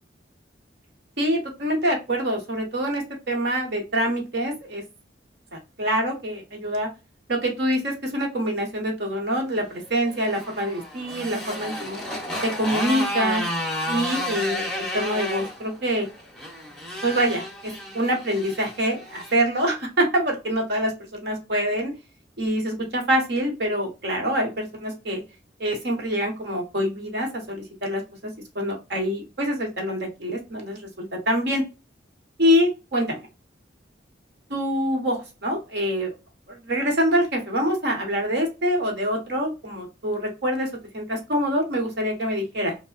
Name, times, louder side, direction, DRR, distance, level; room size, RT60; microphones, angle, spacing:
voice 1, 1.2-4.8 5.5-6.9 7.3-12.0 12.4-13.5 13.9-16.1 17.0-21.9 22.4-25.2 25.6-31.6 32.4-33.2 34.5-36.1 36.5-42.7, equal, 55° right, 1 dB, 1.0 m, -25 dB
Motorcycle, 10.0-19.4, equal, 5° left, 0.7 m, -32 dB
3.2 x 2.1 x 2.4 m, 0.28 s
head